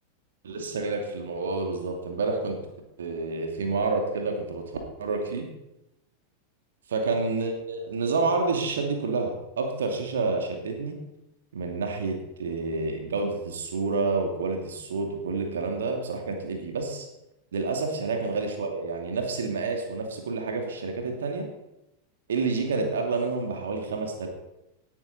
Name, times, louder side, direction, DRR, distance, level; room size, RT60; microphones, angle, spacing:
voice 1, 0.4-2.6 3.0-4.6 5.0-5.5 6.9-11.0 11.5-17.1 17.5-21.5 22.3-24.3, right 3 dB, 65° right, 3 dB, 2.5 m, -29 dB
18.5 x 9.0 x 4.3 m, 0.93 s
figure-of-eight pair, 90°, 0 cm